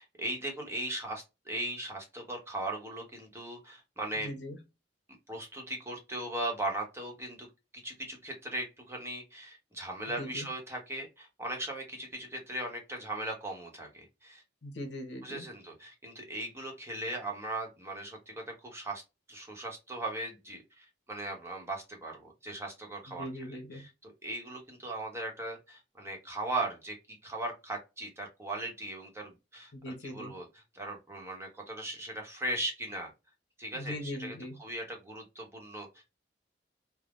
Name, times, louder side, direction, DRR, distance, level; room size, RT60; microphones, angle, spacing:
voice 1, 0.0-4.3 5.3-7.5 7.8-14.4 15.2-19.0 19.3-23.2 23.8-30.5 30.7-33.1 33.6-34.3 34.6-36.0, right 1 dB, 15° right, 0.9 m, -38 dB
voice 2, 4.2-4.6 10.2-10.5 14.6-15.4 23.1-23.8 29.7-30.3 33.7-34.6, left 1 dB, 80° left, 0.8 m, -40 dB
3.5 x 2.0 x 2.4 m
head